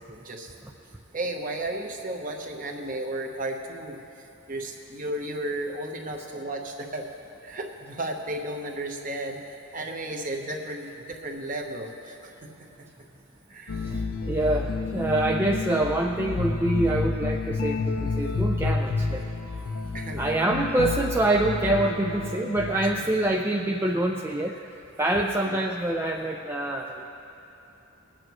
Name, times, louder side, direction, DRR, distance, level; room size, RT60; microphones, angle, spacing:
voice 1, 0.1-0.5 1.1-7.1 7.4-12.5 13.5-13.8 19.9-20.4 22.8-22.9 25.4-25.7, right 1 dB, 40° right, 2 dB, 1.0 m, -34 dB
sound 1, 13.7-23.3, left 4 dB, 85° left, 0.7 m, -30 dB
voice 2, 13.7-19.2 20.2-24.6 25.0-27.0, right 1 dB, 10° right, 0 dB, 0.3 m, -26 dB
21.0 x 8.7 x 3.1 m, 3.0 s
head